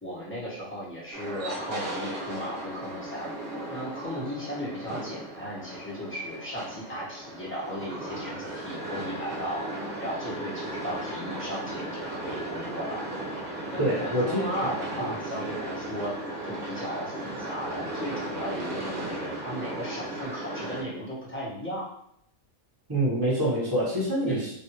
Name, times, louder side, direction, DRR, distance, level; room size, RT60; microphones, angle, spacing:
voice 1, 0.0-3.3 3.7-9.7 10.0-13.0 13.7-16.1 16.4-21.8 24.3-24.5, equal, 10° left, -7 dB, 0.8 m, -36 dB
sound 1, 1.1-20.8, right 1 dB, 55° right, 0.8 m, -36 dB
voice 2, 13.8-14.4 15.0-15.1 22.9-24.5, right 1 dB, 20° right, -9 dB, 1.0 m, -26 dB
3.3 x 2.5 x 2.9 m, 0.74 s
omnidirectional pair, 1.3 m